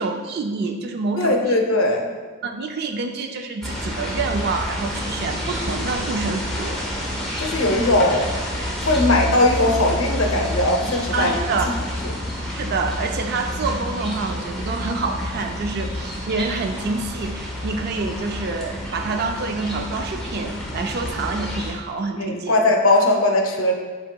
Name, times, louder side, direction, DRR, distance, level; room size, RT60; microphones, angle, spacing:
voice 1, 0.0-1.6 2.4-6.8 11.1-11.8 12.5-22.6, right 3 dB, 50° right, 5 dB, 0.3 m, -27 dB
voice 2, 1.2-2.1 7.4-8.3 8.8-11.4 12.0-12.3 22.2-23.7, left 2 dB, 65° left, 2 dB, 0.6 m, -19 dB
sound 1, 3.6-21.7, left 1 dB, ahead, 0.8 m, -29 dB
8.5 x 2.8 x 2.2 m, 1.4 s
head